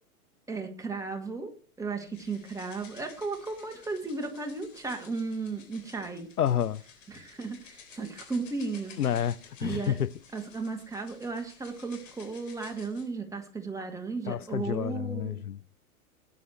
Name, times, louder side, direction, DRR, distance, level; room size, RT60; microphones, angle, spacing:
voice 1, 0.5-1.5 1.8-6.3 7.1-9.0 9.6-9.9 10.3-15.4, right 4 dB, 5° right, 2.1 m, -35 dB
sound 1, 2.1-13.1, left 6 dB, 55° left, 3.8 m, -53 dB
voice 2, 6.4-6.8 9.0-10.1 14.3-15.6, left 9 dB, 75° left, 0.8 m, -29 dB
18.5 x 9.7 x 3.1 m
figure-of-eight pair, 105°, 45 cm